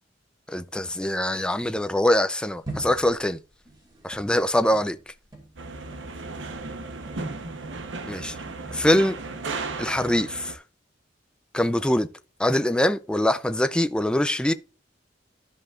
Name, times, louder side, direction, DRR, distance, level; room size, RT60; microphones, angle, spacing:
voice 1, 0.5-3.4 4.0-5.0 8.1-8.4 8.7-9.2 9.8-10.6 11.5-12.1 12.4-14.5, left 1 dB, 5° left, 0.4 m, -23 dB
sound 1, 2.7-7.3 7.6-8.9, right 2 dB, 25° right, 2.3 m, -42 dB
sound 2, 5.6-10.5, right 3 dB, 90° right, 0.9 m, -35 dB
13.0 x 5.2 x 2.4 m
head